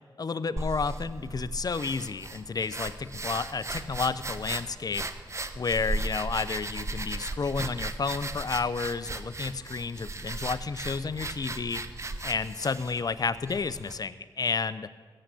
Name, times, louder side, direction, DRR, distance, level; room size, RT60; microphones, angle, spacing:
voice 1, 0.2-5.1 5.5-11.8 12.2-14.9, left 4 dB, 50° left, 14 dB, 0.7 m, -31 dB
sound 1, 0.6-14.0, right 2 dB, 35° right, 1.1 m, -37 dB
15.0 x 7.8 x 8.5 m, 1.4 s
cardioid pair, 50°, 9 cm